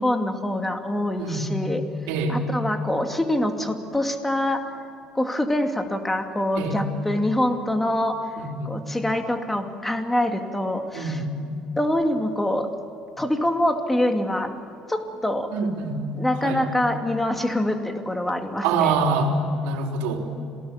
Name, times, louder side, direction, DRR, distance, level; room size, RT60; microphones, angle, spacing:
voice 1, 0.0-1.8 2.3-4.7 5.1-8.4 8.7-11.2 11.8-12.7 13.2-14.6 14.9-15.5 16.2-18.9, left 1 dB, 10° left, 5 dB, 2.5 m, -25 dB
voice 2, 1.2-1.5 2.1-2.4 6.6-6.8 8.4-8.7 10.9-11.3 15.5-16.1 16.4-16.6 18.6-19.3 19.6-20.2, right 4 dB, 90° right, 2 dB, 3.7 m, -25 dB
27.0 x 19.0 x 7.3 m, 2.7 s
cardioid pair, 110°, 2 cm